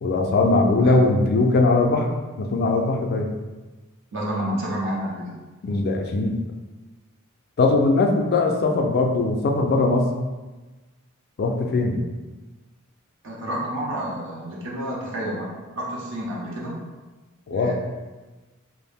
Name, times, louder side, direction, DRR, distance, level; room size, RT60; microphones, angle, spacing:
voice 1, 0.0-2.1 2.4-3.3 5.6-6.4 7.6-10.1 11.4-12.0 17.5-17.7, left 3 dB, 50° left, 2 dB, 0.3 m, -20 dB
voice 2, 4.1-5.3 13.2-15.5 15.8-16.8 17.5-17.7, right 1 dB, 60° right, -4 dB, 0.6 m, -29 dB
2.4 x 2.0 x 3.4 m, 1.2 s
head